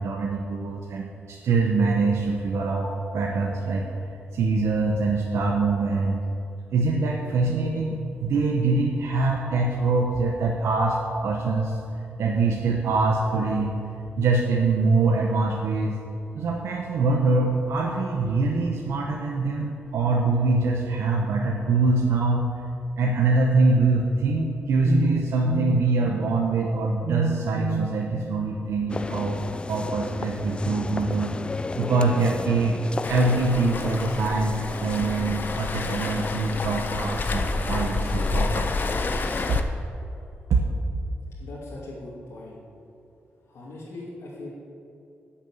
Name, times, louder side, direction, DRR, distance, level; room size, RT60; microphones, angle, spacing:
voice 1, 0.0-3.9 4.3-6.2 6.7-11.7 12.2-13.7 14.2-16.0 16.3-22.4 23.0-29.4 29.7-31.3 31.7-32.7 33.1-38.7 40.5-40.6, right 3 dB, 90° right, -1 dB, 1.2 m, -24 dB
sound 1, 28.9-39.6, left 3 dB, 25° left, 0.3 m, -34 dB
Waves surf, 33.0-39.6, left 3 dB, 45° left, 0.9 m, -29 dB
voice 2, 41.4-42.6 43.4-44.5, left 2 dB, 80° left, -7 dB, 2.6 m, -40 dB
10.5 x 7.4 x 9.0 m, 2.7 s
wide cardioid pair, 135°, 5 cm